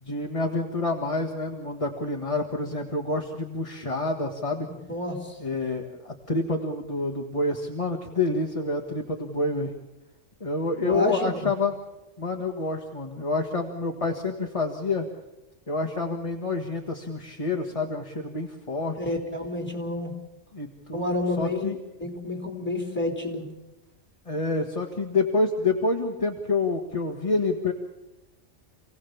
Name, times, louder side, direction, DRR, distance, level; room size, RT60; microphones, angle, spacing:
voice 1, 0.0-4.7 5.4-9.7 10.4-11.7 12.2-15.1 15.7-19.1 20.5-21.8 24.3-27.7, left 3 dB, 25° left, 2 dB, 1.6 m, -28 dB
voice 2, 4.7-5.4 10.8-11.5 19.0-20.1 20.9-21.7 22.0-23.5, left 1 dB, 10° left, 1 dB, 3.9 m, -29 dB
28.0 x 17.5 x 7.1 m, 1.0 s
omnidirectional pair, 1.3 m